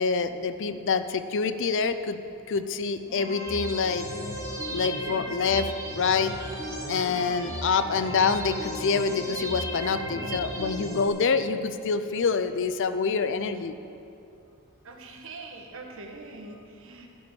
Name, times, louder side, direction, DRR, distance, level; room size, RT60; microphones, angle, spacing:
voice 1, 0.0-2.2 2.5-4.1 4.7-6.3 6.9-13.7, left 5 dB, 60° left, 11 dB, 0.5 m, -26 dB
sound 1, 3.1-11.1, equal, 15° right, 2.5 m, -35 dB
voice 2, 14.8-17.1, right 3 dB, 65° right, 2 dB, 1.4 m, -43 dB
12.5 x 5.3 x 8.5 m, 2.6 s
head